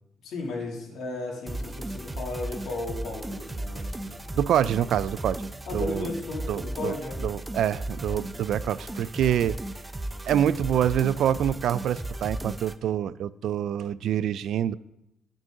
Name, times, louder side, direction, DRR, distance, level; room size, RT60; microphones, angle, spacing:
voice 1, 0.2-4.3 5.7-7.2, left 2 dB, 75° left, 2.7 m, -35 dB
sound 1, 1.5-12.8, right 1 dB, 15° right, 0.5 m, -35 dB
voice 2, 4.3-5.5 5.7-6.1 6.5-6.9 7.2-9.6 10.3-14.7, right 10 dB, 75° right, 0.3 m, -26 dB
10.5 x 6.2 x 3.8 m
cardioid pair, 90°, 0 cm